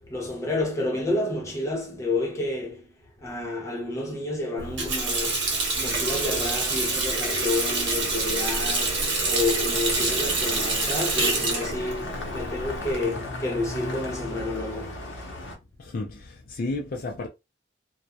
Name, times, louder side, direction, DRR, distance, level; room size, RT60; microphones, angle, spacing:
voice 1, 0.1-15.0, left 2 dB, 15° left, 0.7 m, -30 dB
Water tap faucet, 4.6-13.0, right 3 dB, 80° right, 1.0 m, -26 dB
sound 1, 5.4-15.5, left 2 dB, 90° left, 0.6 m, -38 dB
voice 2, 15.8-17.3, left 2 dB, 50° left, 0.4 m, -32 dB
2.2 x 2.1 x 2.7 m
head